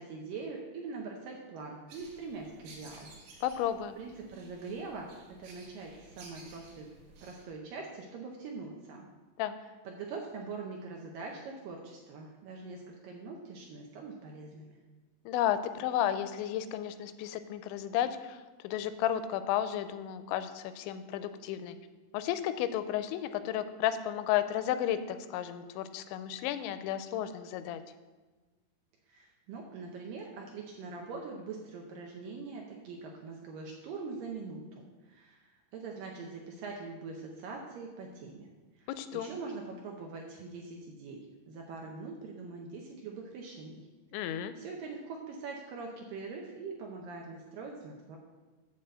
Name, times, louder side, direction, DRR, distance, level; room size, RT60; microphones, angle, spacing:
voice 1, 0.0-3.2 4.0-6.9 7.2-9.1 9.8-14.8 29.1-38.5 38.8-41.2 41.5-43.9 44.6-48.2, right 4 dB, 85° right, 0 dB, 1.9 m, -43 dB
sound 1, 1.9-7.4, right 3 dB, 65° right, 3.2 m, -55 dB
voice 2, 3.4-4.0 9.4-9.5 15.3-18.4 18.6-21.8 22.1-27.8 38.9-39.3 44.1-44.5, left 11 dB, 90° left, 11 dB, 2.9 m, -33 dB
11.0 x 4.0 x 7.5 m, 1.3 s
omnidirectional pair, 5.1 m